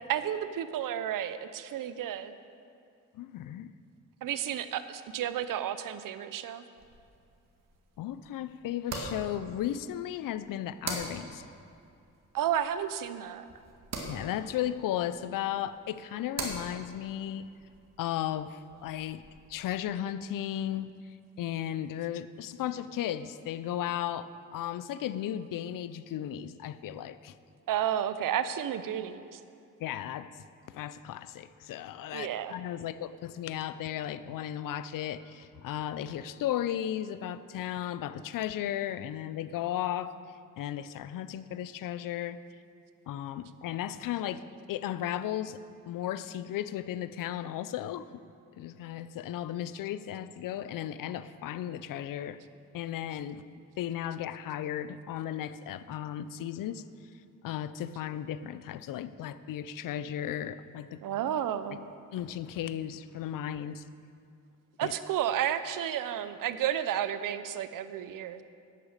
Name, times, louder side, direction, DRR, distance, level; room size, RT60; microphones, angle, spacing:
voice 1, 0.1-2.3 4.2-6.6 12.3-13.5 27.7-29.4 32.1-32.6 61.0-61.8 64.8-68.4, right 10 dB, 75° right, 12 dB, 0.7 m, -32 dB
voice 2, 3.1-3.7 8.0-11.4 14.1-17.5 18.0-19.2 19.5-20.9 21.4-27.3 29.8-30.3 30.7-40.1 40.6-42.4 43.1-45.6 45.9-48.1 48.6-52.4 52.7-53.4 53.8-56.8 57.4-61.0 62.1-63.8 64.8-64.9, left 11 dB, 80° left, 14 dB, 0.6 m, -35 dB
sound 1, 6.8-19.6, right 3 dB, 55° right, 2.1 m, -44 dB
10.0 x 9.2 x 6.6 m, 2.5 s
cardioid pair, 80°, 33 cm